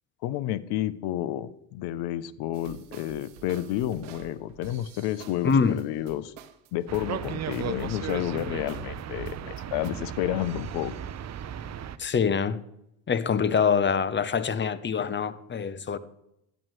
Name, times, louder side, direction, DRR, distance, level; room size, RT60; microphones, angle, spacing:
voice 1, 0.2-6.3 6.7-10.9, left 13 dB, 65° left, 0.7 m, -30 dB
sound 1, 2.5-9.9, right 9 dB, 75° right, 0.9 m, -49 dB
voice 2, 5.4-5.8 12.0-12.6 13.1-16.0, left 6 dB, 25° left, 0.7 m, -25 dB
sound 2, 6.9-12.0, right 9 dB, 40° right, 0.7 m, -35 dB
11.0 x 8.8 x 3.2 m
hypercardioid pair, 70°, 43 cm